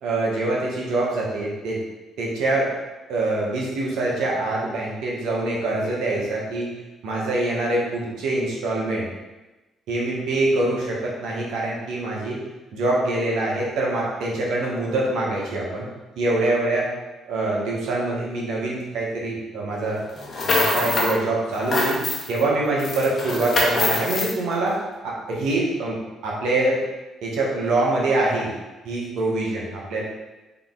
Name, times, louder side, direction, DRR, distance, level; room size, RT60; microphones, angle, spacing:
voice 1, 0.0-1.8 2.2-2.7 3.1-6.7 7.0-9.0 9.9-12.4 12.7-15.9 16.2-16.9 17.3-20.0 20.4-22.0 22.3-24.8 25.0-26.8 27.2-28.5 28.8-30.0, right 2 dB, 75° right, -3 dB, 1.1 m, -24 dB
sound 1, 20.2-21.2 21.5-22.4 22.8-24.3, left 2 dB, 45° left, 1.0 m, -24 dB
3.7 x 3.0 x 3.7 m, 1.1 s
hypercardioid pair, 55°, 0 cm